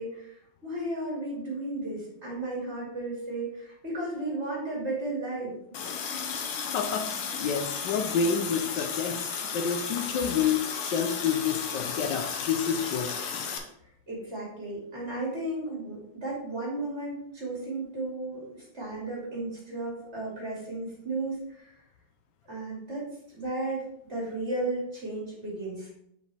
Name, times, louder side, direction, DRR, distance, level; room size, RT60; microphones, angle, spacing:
voice 1, 0.0-5.5 14.1-21.7 22.5-25.9, right 2 dB, 30° right, -5 dB, 2.4 m, -34 dB
Water tap faucet, 5.7-13.6, left 6 dB, 85° left, 1.8 m, -34 dB
voice 2, 6.7-7.1 7.4-13.1, left 6 dB, 70° left, 6 dB, 1.1 m, -29 dB
6.5 x 5.2 x 3.3 m, 0.74 s
omnidirectional pair, 2.4 m